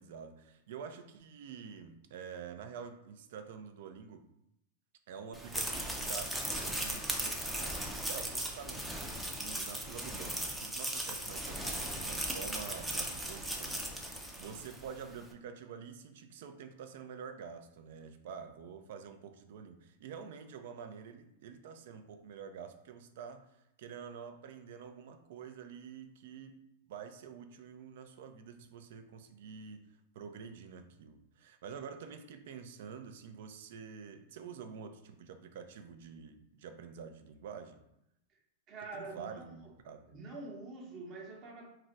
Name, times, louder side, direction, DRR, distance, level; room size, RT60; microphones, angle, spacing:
voice 1, 0.0-4.2 5.1-9.0 9.4-23.5 23.8-26.5 26.9-29.8 30.1-37.8 38.9-40.2, right 6 dB, 65° right, 8 dB, 0.4 m, -48 dB
sound 1, 5.3-14.9, right 1 dB, 5° right, 0.4 m, -37 dB
voice 2, 38.7-39.6 40.1-41.7, right 3 dB, 35° right, 0 dB, 0.8 m, -45 dB
2.4 x 2.1 x 3.9 m, 0.81 s
hypercardioid pair, 125°, 0 cm